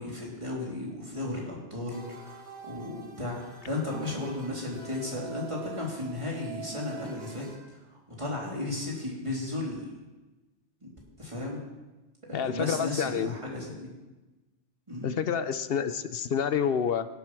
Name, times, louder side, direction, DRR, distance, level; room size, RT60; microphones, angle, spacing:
voice 1, 0.0-7.5 7.9-9.9 10.8-10.9 11.2-11.6 12.3-13.9 14.9-15.3, left 2 dB, 25° right, -3 dB, 3.2 m, -35 dB
sound 1, 1.9-7.5, right 5 dB, 75° right, 3.1 m, -45 dB
voice 2, 12.3-13.3 15.0-17.1, left 7 dB, 60° left, 12 dB, 0.8 m, -28 dB
17.0 x 8.0 x 6.1 m, 1.1 s
omnidirectional pair, 1.2 m